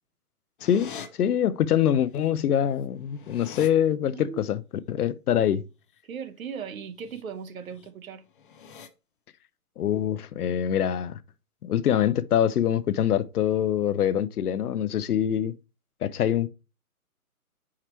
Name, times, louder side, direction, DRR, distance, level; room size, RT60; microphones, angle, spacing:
voice 1, 0.6-4.6 4.9-5.6 9.8-11.2 11.6-15.5 16.0-16.5, left 9 dB, 75° left, 0.7 m, -24 dB
sound 1, 0.6-1.1 2.3-2.4 2.6-3.7 6.9-7.2 7.6-7.9 8.3-8.9, left 6 dB, 35° left, 0.5 m, -43 dB
voice 2, 6.0-8.2, right 6 dB, 65° right, 0.9 m, -37 dB
4.9 x 4.4 x 4.5 m
hypercardioid pair, 150°, 45 cm